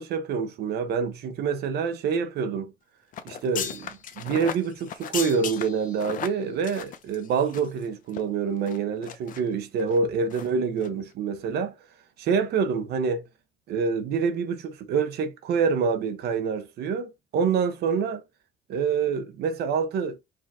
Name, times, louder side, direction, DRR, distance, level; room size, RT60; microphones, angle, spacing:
voice 1, 0.0-2.7 3.2-11.7 12.2-13.2 13.7-18.2 18.7-20.2, right 5 dB, 70° right, 0.9 m, -26 dB
sound 1, 3.1-7.8 8.1-8.2 8.7-9.4 9.8-10.0 10.3-10.5 10.8-10.9, left 8 dB, 55° left, 0.7 m, -36 dB
5.0 x 2.9 x 3.5 m
cardioid pair, 110°, 17 cm